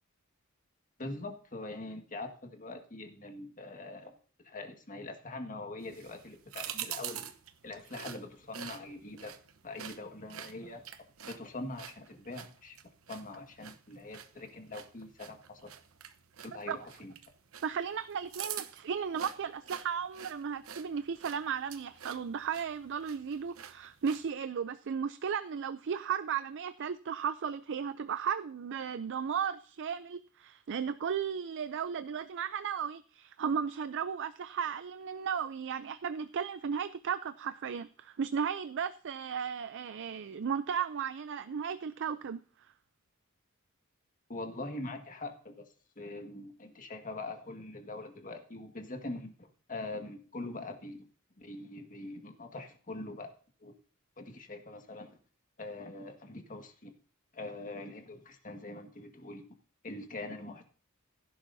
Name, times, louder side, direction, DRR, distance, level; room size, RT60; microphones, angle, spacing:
voice 1, 1.0-4.2 4.4-7.3 7.6-9.3 9.6-10.8 11.2-12.8 13.1-15.7 16.5-17.1 44.3-45.7 46.0-51.1 51.4-53.3 53.6-53.7 54.2-55.2 55.6-56.9 57.3-59.4 59.8-60.7, left 2 dB, 40° left, 1.8 m, -43 dB
sound 1, 5.8-24.3, right 10 dB, 75° right, 1.0 m, -47 dB
voice 2, 17.6-42.7, right 7 dB, 60° right, 0.4 m, -35 dB
16.5 x 11.0 x 2.7 m
head